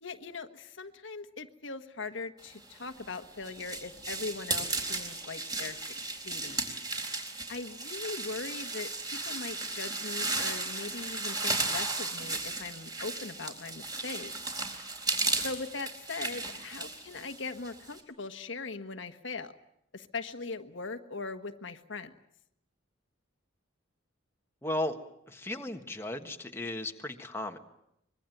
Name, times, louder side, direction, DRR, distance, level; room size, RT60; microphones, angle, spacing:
voice 1, 0.0-5.9 6.2-6.7 7.5-8.9 9.2-14.3 15.3-19.5 19.9-22.1, left 3 dB, 65° left, 7 dB, 1.5 m, -40 dB
sound 1, 2.8-18.0, right 3 dB, 20° right, 4.2 m, -35 dB
voice 2, 24.6-25.0 25.3-27.6, left 1 dB, 10° left, 4 dB, 1.5 m, -35 dB
25.0 x 22.0 x 9.3 m, 0.80 s
head